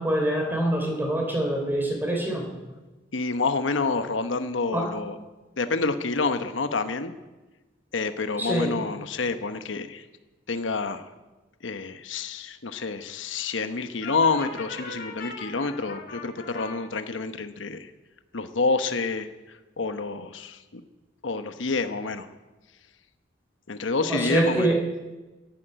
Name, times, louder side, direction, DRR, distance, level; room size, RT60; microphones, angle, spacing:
voice 1, 0.0-2.5 4.7-4.9 8.4-8.8 24.1-24.8, right 1 dB, 10° right, 2 dB, 3.3 m, -25 dB
voice 2, 3.1-5.2 5.6-7.1 7.9-10.0 10.5-11.1 11.6-17.9 18.3-19.3 19.8-20.8 21.2-22.3 23.7-24.7, left 4 dB, 80° left, 9 dB, 1.0 m, -28 dB
Brass instrument, 14.0-16.7, left 3 dB, 50° left, 5.0 m, -39 dB
13.0 x 11.5 x 9.1 m, 1.2 s
head